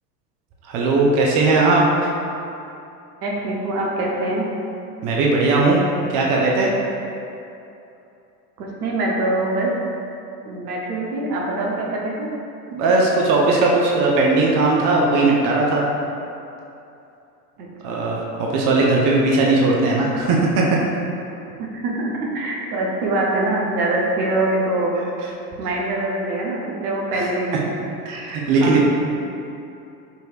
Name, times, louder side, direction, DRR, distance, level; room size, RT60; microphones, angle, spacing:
voice 1, 0.7-2.1 5.0-5.8 6.1-6.7 12.7-15.8 17.8-20.6 27.1-27.2 28.1-28.8, right 3 dB, 40° right, -2 dB, 0.7 m, -18 dB
voice 2, 3.2-4.4 8.6-9.7 10.4-12.3 17.6-18.2 21.7-24.9 25.6-27.6 28.6-28.8, right 2 dB, 70° right, -2 dB, 0.9 m, -24 dB
5.2 x 3.1 x 2.4 m, 2.7 s
hypercardioid pair, 80°, 48 cm